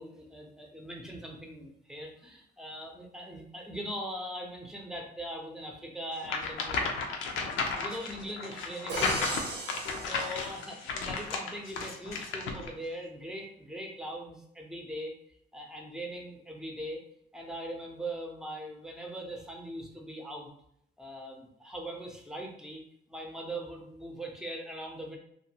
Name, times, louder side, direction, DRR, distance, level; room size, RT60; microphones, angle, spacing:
voice 1, 0.0-7.0 7.4-9.5 10.0-15.1 15.5-17.0 17.3-20.5 21.0-25.2, right 1 dB, 5° right, 0 dB, 0.6 m, -41 dB
sound 1, 6.2-12.7, left 4 dB, 85° left, 0.5 m, -33 dB
Crash cymbal, 8.9-11.1, right 3 dB, 60° right, 0.7 m, -38 dB
2.5 x 2.5 x 2.8 m, 0.73 s
cardioid pair, 90°, 20 cm